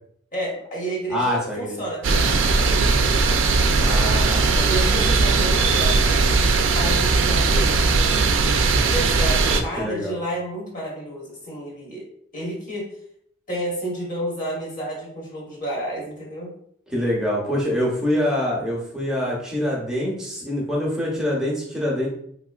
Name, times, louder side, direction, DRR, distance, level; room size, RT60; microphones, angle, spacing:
voice 1, 0.3-2.9 4.6-8.3 8.9-12.1 12.3-12.8 13.5-16.5, right 1 dB, 40° left, -3 dB, 1.3 m, -31 dB
voice 2, 1.1-1.8 3.8-5.2 9.5-10.1 16.9-22.1, left 1 dB, 5° right, -4 dB, 0.8 m, -25 dB
Shelter from the wind, 2.0-9.6, right 3 dB, 70° right, 0.4 m, -19 dB
3.8 x 3.0 x 2.4 m, 0.67 s
head